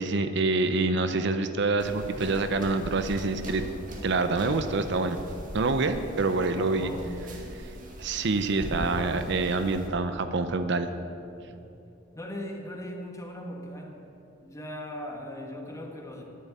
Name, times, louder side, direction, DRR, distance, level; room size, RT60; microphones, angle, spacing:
voice 1, 0.0-3.6 4.0-5.2 5.5-6.9 7.6-7.7 8.0-10.9, right 3 dB, 60° right, 9 dB, 0.7 m, -26 dB
sound 1, 1.8-9.9, equal, 45° right, 2.0 m, -40 dB
voice 2, 6.4-7.1 11.4-11.6 12.1-14.1 14.4-16.2, left 1 dB, 15° left, 1 dB, 1.5 m, -39 dB
10.0 x 7.7 x 9.7 m, 2.7 s
head